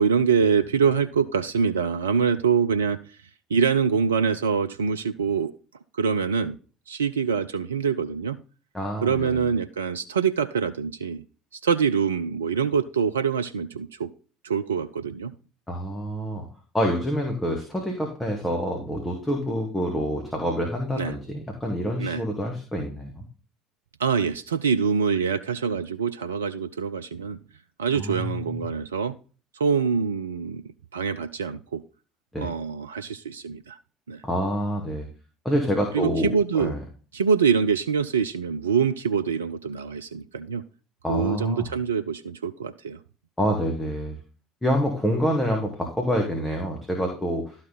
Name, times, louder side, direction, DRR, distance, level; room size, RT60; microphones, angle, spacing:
voice 1, 0.0-3.0 3.5-5.5 5.9-6.6 6.9-8.4 9.0-11.2 11.6-14.1 14.4-15.3 21.0-21.1 22.0-22.2 24.0-27.4 27.8-29.1 29.5-30.6 30.9-31.8 32.4-33.8 34.1-34.2 35.9-36.7 37.1-40.6 41.1-43.0, right 6 dB, 75° right, 10 dB, 0.4 m, -24 dB
voice 2, 8.7-9.4 15.7-16.5 16.7-23.3 28.0-28.6 32.3-32.5 34.2-35.1 35.5-36.8 41.0-41.7 43.4-44.2 44.6-47.6, equal, 10° left, 1 dB, 1.9 m, -27 dB
12.0 x 4.3 x 3.9 m, 0.36 s
figure-of-eight pair, 60°, 0 cm